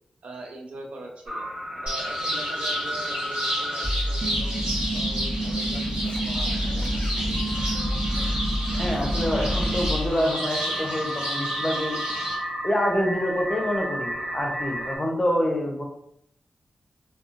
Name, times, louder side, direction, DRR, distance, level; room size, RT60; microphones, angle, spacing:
voice 1, 0.2-1.5 1.8-4.6 4.9-7.0, right 2 dB, 80° right, 1 dB, 0.5 m, -42 dB
sound 1, 1.3-15.0, equal, 20° right, 1.0 m, -29 dB
sound 2, 1.9-12.3, equal, 55° right, 1.4 m, -31 dB
Singing / Scratching (performance technique), 5.6-10.9, left 2 dB, 65° left, 0.5 m, -45 dB
voice 2, 8.8-12.0 12.6-15.8, equal, 25° left, 1 dB, 0.7 m, -26 dB
2.6 x 2.3 x 2.5 m, 0.72 s
cardioid pair, 45°, 2 cm